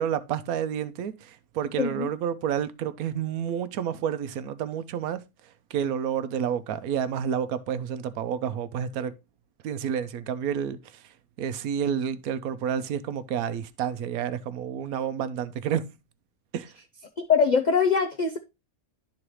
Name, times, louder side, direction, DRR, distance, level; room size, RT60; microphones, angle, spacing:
voice 1, 0.0-5.2 5.7-9.1 9.6-10.8 11.4-15.8 16.5-16.7, right 8 dB, 80° right, 1.1 m, -29 dB
voice 2, 1.8-2.1 17.2-18.4, left 6 dB, 60° left, 0.4 m, -22 dB
11.0 x 3.9 x 3.0 m
omnidirectional pair, 1.5 m